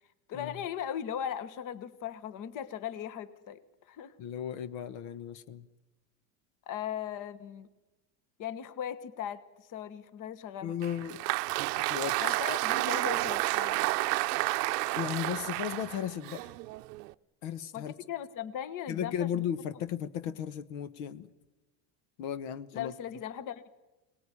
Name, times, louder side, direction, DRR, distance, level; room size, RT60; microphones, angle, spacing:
voice 1, 0.3-3.6 3.9-4.1 6.7-7.7 8.4-10.7 12.2-14.0 17.7-19.4 22.7-23.7, left 9 dB, 40° left, 14 dB, 1.3 m, -38 dB
voice 2, 4.2-5.7 10.6-11.2 11.8-12.4 15.0-16.5 17.4-18.0 18.9-21.3 22.2-22.9, left 9 dB, 70° left, 14 dB, 1.3 m, -35 dB
Applause, 10.8-17.1, right 21 dB, 85° right, 0.8 m, -31 dB
24.5 x 19.0 x 9.9 m, 1.1 s
supercardioid pair, 140°, 47 cm